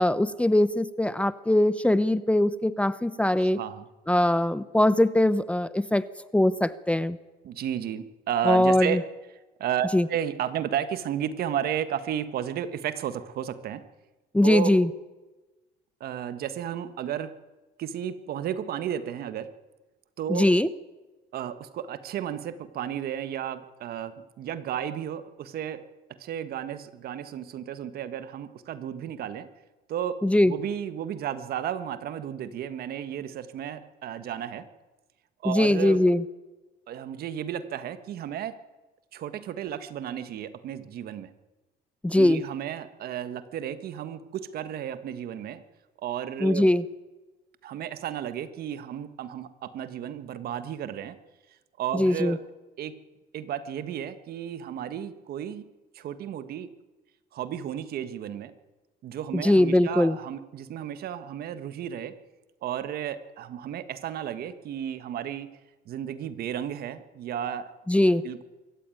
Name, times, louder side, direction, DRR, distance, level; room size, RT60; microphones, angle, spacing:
voice 1, 0.0-3.6 4.1-6.0 6.3-7.2 8.4-9.0 9.9-10.1 14.3-14.9 20.3-20.7 30.2-30.5 35.4-36.2 42.0-42.4 46.4-46.8 51.9-52.4 59.3-60.2 67.9-68.2, left 1 dB, 5° left, 15 dB, 0.7 m, -21 dB
voice 2, 3.4-3.9 7.4-9.0 9.6-13.8 14.4-14.7 16.0-17.4 17.8-19.5 20.2-20.5 21.3-25.8 26.2-29.5 29.9-30.2 30.4-34.7 35.4-36.0 36.9-38.6 39.1-41.3 42.1-45.6 46.0-46.7 47.6-51.2 51.8-52.4 52.8-53.0 53.3-55.6 55.9-56.7 57.3-58.5 59.0-62.1 62.6-65.5 65.8-67.7 68.2-68.4, right 9 dB, 65° right, 11 dB, 1.6 m, -33 dB
24.0 x 14.0 x 9.2 m, 1.2 s
cardioid pair, 110°, 17 cm